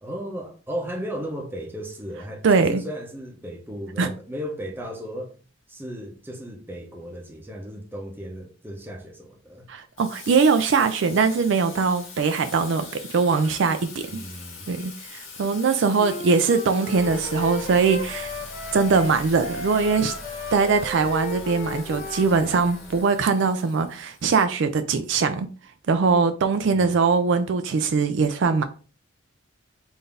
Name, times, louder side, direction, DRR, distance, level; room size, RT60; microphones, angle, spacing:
voice 1, 0.0-5.4 5.7-9.7 14.1-14.7 26.7-26.9, equal, 10° right, 0.7 m, -35 dB
voice 2, 2.4-2.8 4.0-4.1 9.7-12.8 13.1-14.2 14.7-18.3 18.7-20.1 20.5-25.5 25.9-28.6, right 4 dB, 60° right, 0.4 m, -21 dB
Water tap faucet / Sink (filling or washing), 10.0-24.7, left 5 dB, 75° left, 1.5 m, -42 dB
Wind instrument woodwind instrument, 16.0-22.8, left 2 dB, 45° left, 0.8 m, -35 dB
sound 1, 16.9-23.0, equal, 5° left, 1.2 m, -43 dB
3.9 x 2.6 x 3.4 m
head